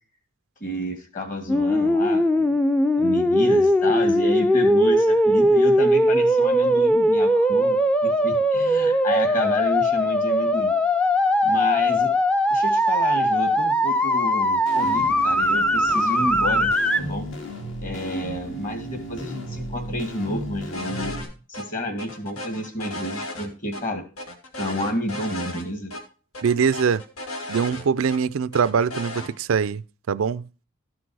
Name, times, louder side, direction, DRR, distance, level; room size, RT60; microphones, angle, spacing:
voice 1, 0.6-2.6 3.0-10.7 11.4-12.1 12.5-16.7 17.0-17.3 17.8-21.2 21.5-24.0 24.6-25.9, equal, 40° left, 2.1 m, -30 dB
sound 1, 1.5-17.0, equal, 5° left, 0.5 m, -20 dB
sound 2, 14.7-21.2, equal, 65° left, 2.5 m, -35 dB
sound 3, 20.7-21.3 21.5-21.6 22.0-23.8 24.2-25.6 25.9-26.0 26.3-28.2 28.5-29.3, left 1 dB, 85° left, 1.8 m, -35 dB
voice 2, 26.4-27.0 27.5-29.8 30.1-30.5, right 6 dB, 80° right, 0.4 m, -22 dB
13.0 x 6.2 x 4.7 m
head